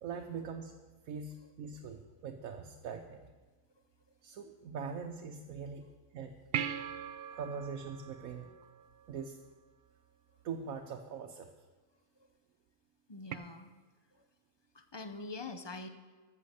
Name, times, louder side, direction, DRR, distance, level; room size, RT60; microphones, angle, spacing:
voice 1, 0.0-3.2 4.2-5.8 6.1-6.3 7.3-8.5 9.1-9.4 10.4-11.5, right 6 dB, 80° right, 3 dB, 1.2 m, -42 dB
sound 1, 6.5-9.2 13.3-13.4, right 8 dB, 60° right, 0.6 m, -39 dB
voice 2, 13.1-13.7 14.1-14.2 14.7-15.9, left 3 dB, 30° left, 8 dB, 0.5 m, -44 dB
13.5 x 7.6 x 6.5 m, 1.3 s
omnidirectional pair, 1.5 m